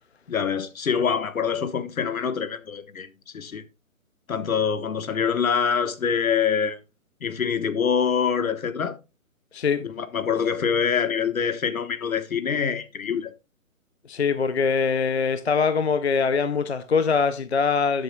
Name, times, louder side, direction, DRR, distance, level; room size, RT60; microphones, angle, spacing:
voice 1, 0.3-3.1 3.3-3.6 4.3-6.8 7.2-9.0 9.8-13.3, left 6 dB, 70° left, 1.3 m, -25 dB
voice 2, 14.1-18.0, left 5 dB, 50° left, 0.6 m, -23 dB
13.0 x 7.7 x 2.3 m
hypercardioid pair, 180°, 43 cm